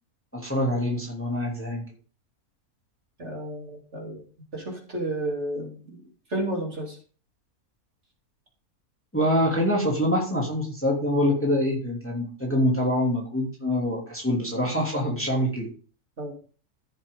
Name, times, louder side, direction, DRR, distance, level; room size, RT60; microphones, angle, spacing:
voice 1, 0.3-1.8 9.1-15.7, equal, 10° left, -2 dB, 2.8 m, -25 dB
voice 2, 3.2-4.2 4.5-6.0 6.3-7.0 16.2-16.3, right 1 dB, 50° right, -1 dB, 3.6 m, -31 dB
14.5 x 7.3 x 3.8 m, 0.40 s
omnidirectional pair, 1.6 m